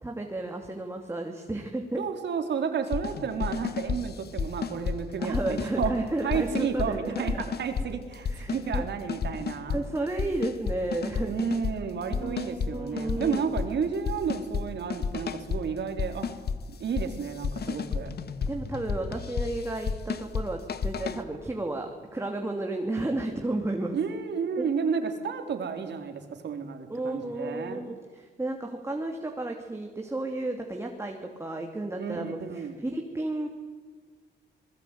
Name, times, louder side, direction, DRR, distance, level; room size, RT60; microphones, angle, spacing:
voice 1, 0.0-2.0 5.2-7.4 8.2-8.8 9.7-11.3 12.1-13.4 17.9-18.1 18.5-24.0 24.6-24.7 26.9-33.5, right 2 dB, 15° right, 2 dB, 2.8 m, -32 dB
voice 2, 2.0-5.9 6.2-9.8 11.2-16.3 16.8-18.1 23.9-27.8 32.0-32.8, right 6 dB, 65° right, 6 dB, 4.0 m, -31 dB
sound 1, 2.9-5.9 6.3-6.9 7.1-7.9 8.1-8.8 9.1-9.8 10.2-11.7 12.1-12.7 13.0-13.7 14.0-14.6 14.9-15.6 16.0-16.6 16.9-21.2, left 6 dB, 55° left, 1.7 m, -31 dB
27.5 x 21.0 x 9.4 m, 1.5 s
cardioid pair, 110°, 19 cm